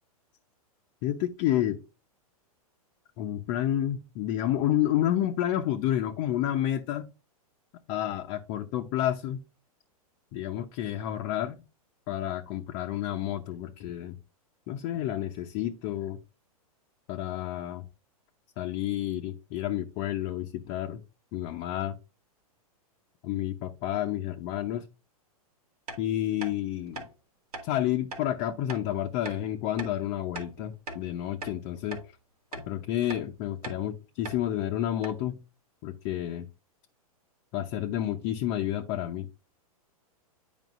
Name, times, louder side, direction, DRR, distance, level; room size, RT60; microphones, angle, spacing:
voice 1, 1.0-1.8 3.2-7.1 7.9-9.4 10.3-11.6 12.1-14.2 14.7-16.2 17.1-17.9 18.6-21.0 21.3-22.0 23.2-24.8 26.0-27.1 27.6-32.0 32.6-35.4 35.8-36.5 37.5-39.3, left 12 dB, 40° left, 0.7 m, -30 dB
sound 1, 25.9-26.0 26.4-26.5 26.9-27.1 27.5-27.7 28.1-28.3 28.7-28.8 29.3-29.4 29.8-30.0 30.4-31.1 31.4-31.6 31.9-32.1 32.5-32.7 33.1-33.3 33.6-33.8 34.3-34.4 34.7-34.8 35.0-35.2, right 2 dB, 90° right, 2.1 m, -39 dB
9.3 x 5.1 x 2.5 m
hypercardioid pair, 125°, 19 cm